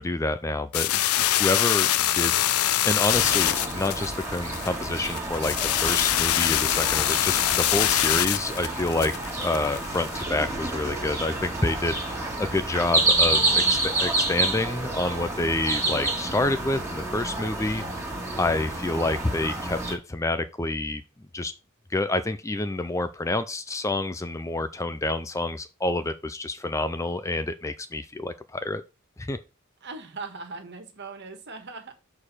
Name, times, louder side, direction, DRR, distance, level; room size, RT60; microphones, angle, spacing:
voice 1, 0.0-1.9 2.1-5.5 5.8-9.1 9.4-21.0 21.3-21.5 21.9-28.8 29.2-29.4, left 2 dB, 15° left, 11 dB, 0.4 m, -28 dB
sound 1, 0.7-10.2, left 12 dB, 85° left, 0.5 m, -24 dB
sound 2, 3.1-19.9, right 2 dB, 15° right, 1.9 m, -29 dB
voice 2, 29.8-31.9, right 4 dB, 50° right, 6 dB, 1.6 m, -39 dB
6.5 x 4.9 x 5.6 m, 0.30 s
head